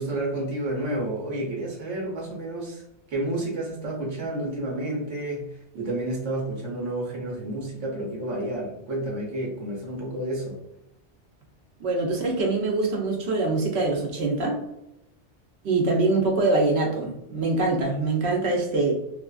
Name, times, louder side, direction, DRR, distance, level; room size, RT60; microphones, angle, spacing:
voice 1, 0.0-2.8 3.1-10.6, right 1 dB, 90° right, -2 dB, 1.2 m, -30 dB
voice 2, 11.8-14.6 15.6-18.9, right 3 dB, 70° right, 0 dB, 0.9 m, -24 dB
2.9 x 2.4 x 2.3 m, 0.85 s
omnidirectional pair, 1.2 m